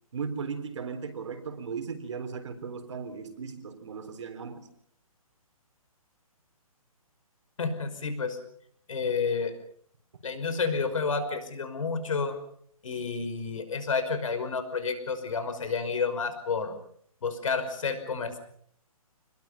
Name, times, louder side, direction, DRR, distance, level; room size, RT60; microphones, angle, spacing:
voice 1, 0.1-4.7, right 5 dB, 55° right, 7 dB, 3.8 m, -37 dB
voice 2, 7.6-8.4 8.9-9.5 10.2-12.4 12.8-16.7 17.2-18.4, left 5 dB, 60° left, 10 dB, 5.6 m, -30 dB
27.0 x 21.5 x 5.8 m, 0.63 s
hypercardioid pair, 170°, 19 cm